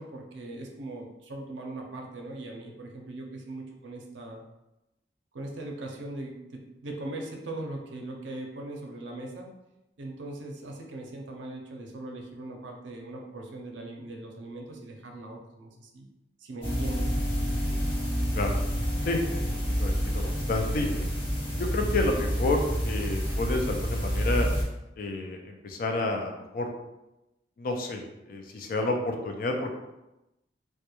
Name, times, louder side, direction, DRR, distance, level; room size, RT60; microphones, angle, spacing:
voice 1, 0.0-4.4 5.3-9.5 10.0-16.1 16.4-17.2 18.2-18.5, right 2 dB, 75° right, 1 dB, 0.5 m, -40 dB
sound 1, 16.6-24.6, equal, 30° left, 0.8 m, -28 dB
voice 2, 19.1-21.1 21.6-24.5 25.0-26.7 27.6-29.7, left 2 dB, 50° left, 3 dB, 0.3 m, -30 dB
2.2 x 2.1 x 2.9 m, 0.95 s
head